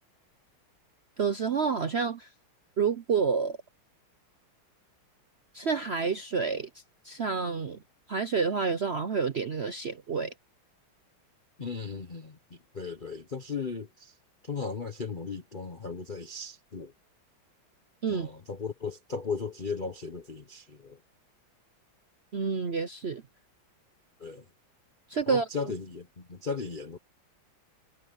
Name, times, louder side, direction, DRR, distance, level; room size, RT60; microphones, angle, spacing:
voice 1, 1.2-2.3 2.8-3.6 5.5-6.7 7.0-7.8 8.1-10.3 18.0-18.3 22.3-23.2 25.1-25.4, right 5 dB, 75° right, 0.5 m, -28 dB
voice 2, 11.6-14.2 14.4-16.9 18.1-21.0 24.2-24.4 25.3-27.0, left 5 dB, 35° left, 0.9 m, -36 dB
omnidirectional pair, 2.3 m